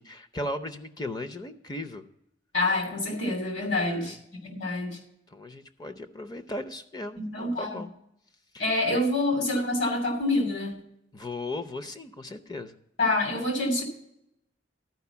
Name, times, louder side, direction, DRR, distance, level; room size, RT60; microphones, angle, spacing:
voice 1, 0.0-2.0 3.7-4.2 5.3-7.9 8.5-8.6 8.9-9.0 11.1-12.7, left 1 dB, 20° left, 9 dB, 0.6 m, -37 dB
voice 2, 2.5-5.0 7.2-7.8 8.6-10.7 13.0-13.8, left 2 dB, 65° left, 3 dB, 2.7 m, -27 dB
12.0 x 4.9 x 6.9 m, 0.79 s
head